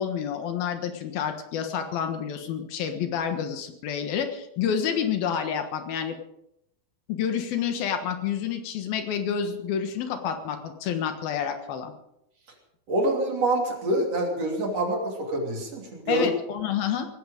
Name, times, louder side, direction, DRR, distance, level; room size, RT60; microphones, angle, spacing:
voice 1, 0.0-6.2 7.1-11.9 16.1-17.1, left 8 dB, 70° left, 7 dB, 3.2 m, -29 dB
voice 2, 12.9-16.3, right 2 dB, 45° right, 1 dB, 3.8 m, -26 dB
18.5 x 15.0 x 5.1 m, 0.81 s
omnidirectional pair, 4.5 m